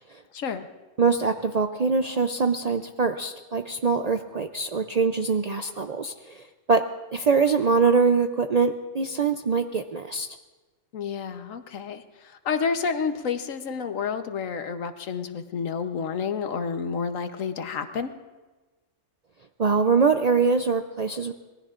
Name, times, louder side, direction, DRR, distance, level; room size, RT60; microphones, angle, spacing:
voice 1, 0.3-0.7 10.9-18.1, left 6 dB, 85° left, 8 dB, 1.3 m, -30 dB
voice 2, 1.0-6.8 7.1-10.3 19.6-21.3, right 4 dB, 55° right, 7 dB, 0.4 m, -23 dB
26.0 x 19.5 x 2.5 m, 1.2 s
omnidirectional pair, 1.3 m